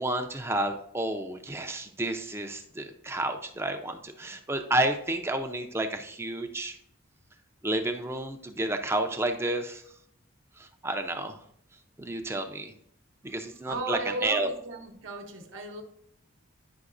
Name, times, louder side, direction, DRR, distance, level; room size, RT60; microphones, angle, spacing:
voice 1, 0.0-6.8 7.6-9.8 10.6-11.4 12.0-12.7 13.2-14.5, right 1 dB, 10° right, 6 dB, 0.5 m, -30 dB
voice 2, 13.6-15.8, right 2 dB, 65° right, 4 dB, 0.9 m, -35 dB
9.5 x 5.6 x 2.5 m, 0.71 s
head